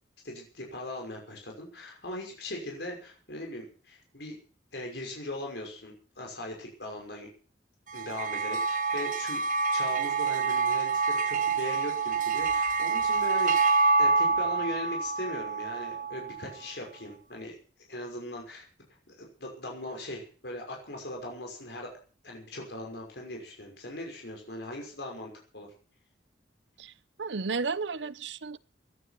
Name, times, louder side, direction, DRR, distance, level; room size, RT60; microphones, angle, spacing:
voice 1, 0.2-4.4 4.7-7.3 7.9-9.4 9.7-17.6 17.9-18.7 19.1-21.9 22.2-25.7, left 1 dB, 65° left, 5.9 m, -39 dB
sound 1, 7.9-16.5, right 4 dB, 45° right, 1.1 m, -27 dB
voice 2, 27.2-28.6, right 4 dB, 80° right, 0.8 m, -33 dB
17.5 x 11.5 x 6.0 m
head